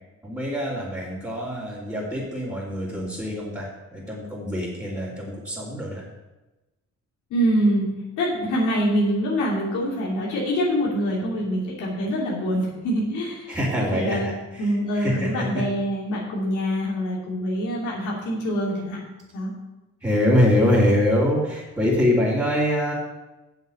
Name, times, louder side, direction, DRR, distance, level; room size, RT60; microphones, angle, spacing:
voice 1, 0.2-6.0 13.5-15.6 20.0-22.9, left 1 dB, 10° right, -9 dB, 3.1 m, -24 dB
voice 2, 7.3-7.9 8.2-13.6 13.9-14.3 14.6-19.0 19.3-19.5, equal, 85° left, -4 dB, 2.9 m, -25 dB
8.1 x 7.3 x 7.1 m, 1.1 s
cardioid pair, 90°, 30 cm